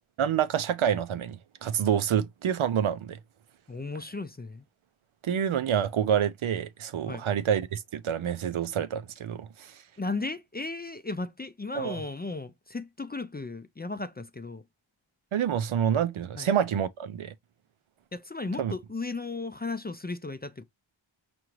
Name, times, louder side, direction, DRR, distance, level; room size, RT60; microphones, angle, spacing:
voice 1, 0.2-3.2 5.2-9.7 11.8-12.0 15.3-17.3 18.6-18.7, right 9 dB, 80° right, 0.5 m, -27 dB
voice 2, 3.7-4.7 7.0-7.3 10.0-14.6 16.3-16.5 18.1-20.6, left 3 dB, 20° left, 0.3 m, -35 dB
5.7 x 2.6 x 2.9 m
wide cardioid pair, 50°, 48 cm